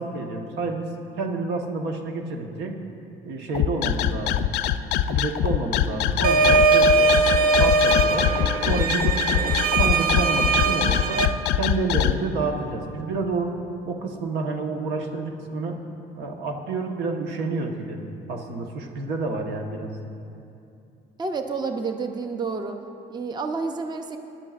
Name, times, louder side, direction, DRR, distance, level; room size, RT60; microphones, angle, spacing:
voice 1, 0.0-2.8 3.2-4.4 5.1-7.1 7.6-8.3 8.7-9.5 9.8-11.2 11.5-15.8 16.2-18.0 18.3-19.9, right 3 dB, 85° right, 3 dB, 1.3 m, -29 dB
sound 1, 3.5-12.1, left 11 dB, 85° left, 0.4 m, -23 dB
sound 2, 6.2-11.3, right 3 dB, 60° right, 0.7 m, -20 dB
voice 2, 21.2-22.8 23.1-24.2, right 4 dB, 25° right, 6 dB, 0.7 m, -29 dB
21.5 x 11.0 x 2.5 m, 2.7 s
cardioid pair, 110°, 17 cm